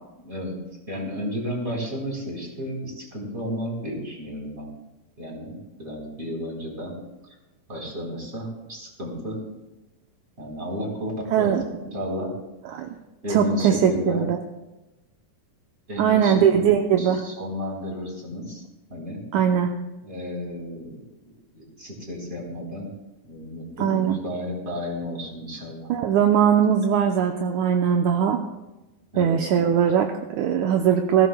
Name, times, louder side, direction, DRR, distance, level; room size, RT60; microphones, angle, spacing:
voice 1, 0.2-0.6 0.9-4.7 5.2-7.0 7.7-9.4 10.4-11.6 11.8-12.3 13.2-14.3 15.9-16.6 17.0-18.6 18.9-19.2 20.0-22.9 23.2-25.9 29.1-29.4, left 1 dB, 20° right, -2 dB, 3.8 m, -32 dB
voice 2, 11.3-11.6 12.7-12.9 13.3-14.4 16.0-17.2 19.3-19.7 23.8-24.2 25.9-28.4 29.2-31.3, right 8 dB, 75° right, 4 dB, 1.9 m, -20 dB
19.5 x 16.0 x 2.2 m, 1.0 s
omnidirectional pair, 4.0 m